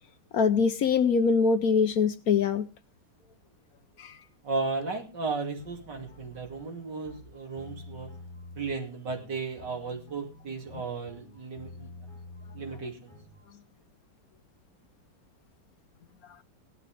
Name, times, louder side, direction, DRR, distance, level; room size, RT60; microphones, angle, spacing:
voice 1, 0.3-2.7 4.0-4.1, left 5 dB, 60° left, 1.2 m, -23 dB
voice 2, 4.4-8.1 8.6-11.9 12.5-13.1, right 4 dB, 75° right, 3.4 m, -35 dB
sound 1, 5.6-13.5, left 2 dB, 25° left, 2.8 m, -48 dB
17.0 x 11.5 x 3.4 m
omnidirectional pair, 1.9 m